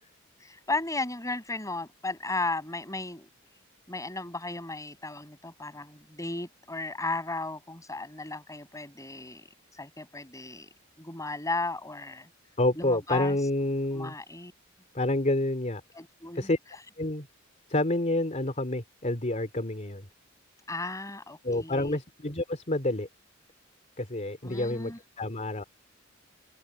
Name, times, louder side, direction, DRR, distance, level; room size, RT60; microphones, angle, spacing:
voice 1, 0.4-3.3 3.9-9.5 9.7-10.7 11.0-12.3 12.8-13.4 13.9-14.5 15.9-16.5 20.7-22.0 24.4-25.0, left 2 dB, 15° left, 6.3 m, -35 dB
voice 2, 12.6-14.1 14.9-15.8 16.3-16.6 17.0-17.3 17.7-20.1 21.4-23.1 24.0-24.9 25.2-25.6, left 1 dB, 35° left, 3.1 m, -28 dB
open air
head